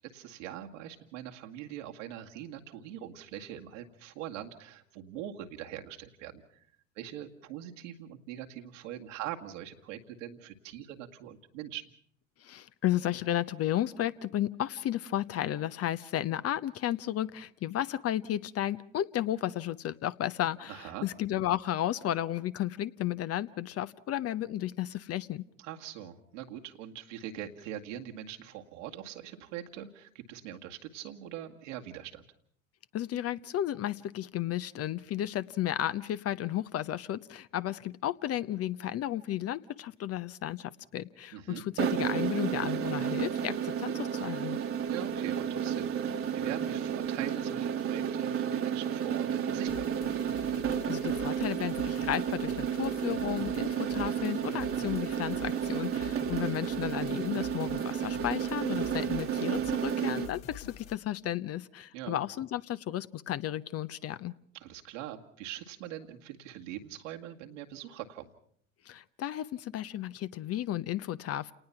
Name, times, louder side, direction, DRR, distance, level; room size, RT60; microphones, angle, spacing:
voice 1, 0.0-6.7 7.0-11.9 20.7-21.1 25.6-32.2 41.3-41.6 44.9-50.2 61.9-62.2 64.5-68.3, right 11 dB, 65° right, 3 dB, 2.1 m, -42 dB
voice 2, 12.4-25.4 32.9-44.6 50.9-64.3 68.9-71.5, left 12 dB, 35° left, 14 dB, 0.8 m, -33 dB
sound 1, 41.8-60.3, right 8 dB, 35° right, 1.5 m, -32 dB
sound 2, 49.7-61.0, left 8 dB, 60° left, 2.0 m, -48 dB
29.0 x 19.0 x 5.9 m, 0.63 s
figure-of-eight pair, 70°, 40 cm